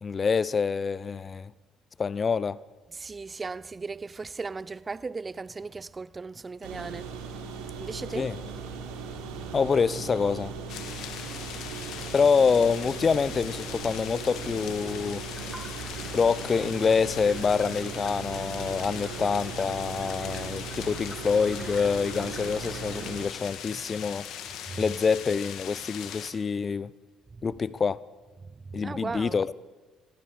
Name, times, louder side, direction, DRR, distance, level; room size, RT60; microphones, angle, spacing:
voice 1, 0.0-1.5 2.0-2.6 8.1-8.4 9.5-10.5 12.1-15.2 16.1-24.3 24.8-26.9 27.4-28.0 28.7-29.5, left 5 dB, 35° left, 0.7 m, -26 dB
voice 2, 2.9-7.1 7.8-8.3 24.7-24.8 27.3-27.5 28.7-29.4, right 4 dB, 30° right, 0.6 m, -37 dB
sound 1, 6.6-23.3, right 5 dB, 70° right, 3.6 m, -38 dB
sound 2, 10.7-26.3, left 9 dB, 60° left, 2.3 m, -40 dB
sound 3, 15.2-23.1, right 1 dB, 5° right, 6.2 m, -49 dB
26.5 x 22.5 x 5.2 m
figure-of-eight pair, 50°, 0 cm